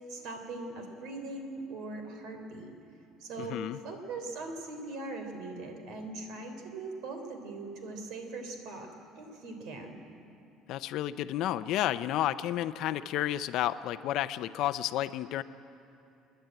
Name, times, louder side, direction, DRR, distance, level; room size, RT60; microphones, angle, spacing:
voice 1, 0.1-2.7 3.2-3.6 3.8-10.0, right 3 dB, 65° right, 5 dB, 3.4 m, -41 dB
voice 2, 3.4-3.8 10.7-15.4, left 13 dB, 60° left, 13 dB, 0.6 m, -31 dB
28.5 x 10.5 x 8.9 m, 2.9 s
cardioid pair, 155°, 0 cm